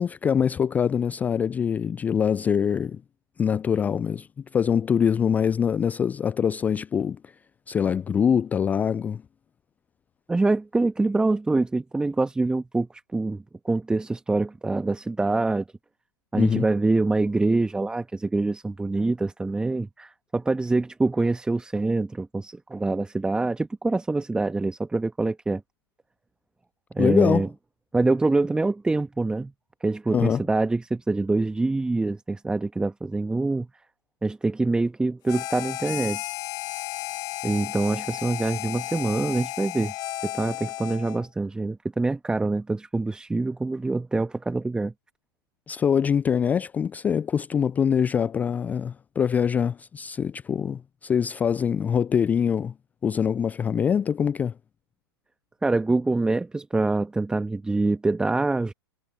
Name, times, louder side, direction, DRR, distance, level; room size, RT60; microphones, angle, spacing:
voice 1, 0.0-3.0 3.4-4.3 4.5-7.3 7.7-9.2 16.3-16.7 27.0-27.5 30.1-30.4 45.7-52.7 53.0-54.5, left 7 dB, 10° left, 0.4 m, -24 dB
voice 2, 10.3-15.6 16.3-25.6 26.9-27.5 27.9-29.5 29.8-33.7 34.2-36.2 37.4-39.9 40.2-44.9 55.6-58.7, right 3 dB, 5° right, 1.6 m, -25 dB
Harmonica, 35.3-41.3, left 16 dB, 30° left, 1.9 m, -33 dB
figure-of-eight pair, 105°, 13 cm